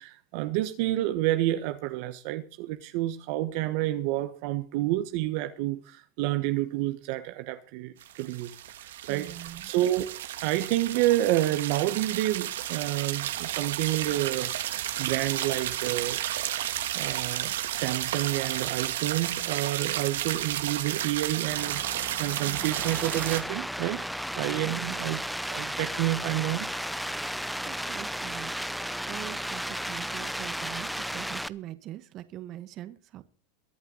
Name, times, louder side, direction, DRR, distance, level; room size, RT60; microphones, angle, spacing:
voice 1, 0.0-8.5 9.1-14.5 14.8-16.2 16.9-24.0 24.4-25.2 25.5-26.7, right 15 dB, 65° right, 1.3 m, -29 dB
sound 1, 8.0-23.4, right 12 dB, 80° right, 1.7 m, -32 dB
voice 2, 9.1-9.7 22.5-22.7 24.6-24.9 27.6-28.5 29.0-33.2, right 13 dB, 45° right, 1.5 m, -43 dB
sound 2, 21.5-31.5, equal, ahead, 0.6 m, -34 dB
23.0 x 8.1 x 4.1 m
hypercardioid pair, 115°, 0 cm